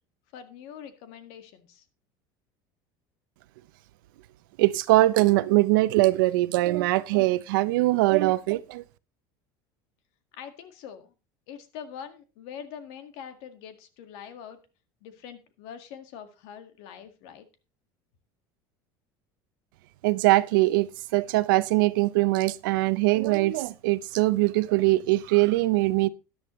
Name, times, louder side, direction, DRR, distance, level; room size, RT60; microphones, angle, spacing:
voice 1, 0.3-1.8 10.4-11.1 11.5-14.6 15.0-17.5, left 8 dB, 70° left, 1.9 m, -43 dB
voice 2, 4.6-8.8 20.0-20.9 21.1-26.1, right 19 dB, 85° right, 0.7 m, -22 dB
13.0 x 10.5 x 3.2 m
supercardioid pair, 115°, 11 cm